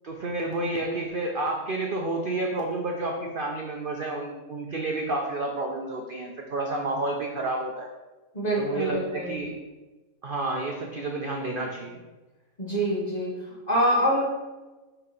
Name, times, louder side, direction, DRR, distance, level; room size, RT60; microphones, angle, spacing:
voice 1, 0.0-7.9 8.6-9.5 10.2-12.0, right 2 dB, 45° right, 1 dB, 0.8 m, -30 dB
voice 2, 8.3-9.4 12.6-14.2, equal, 25° left, -5 dB, 2.5 m, -25 dB
6.2 x 5.6 x 5.5 m, 1.2 s
omnidirectional pair, 1.7 m